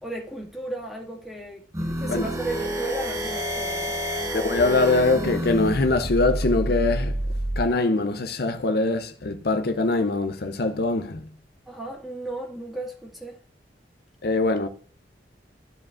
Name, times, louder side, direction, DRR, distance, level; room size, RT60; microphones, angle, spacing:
voice 1, 0.0-3.9 11.7-13.4, right 2 dB, ahead, 2.1 m, -35 dB
sound 1, 1.7-7.7, equal, 15° right, 1.0 m, -28 dB
voice 2, 4.3-7.2 7.6-11.2 14.2-14.7, left 3 dB, 60° left, 0.7 m, -23 dB
14.5 x 4.9 x 2.5 m
head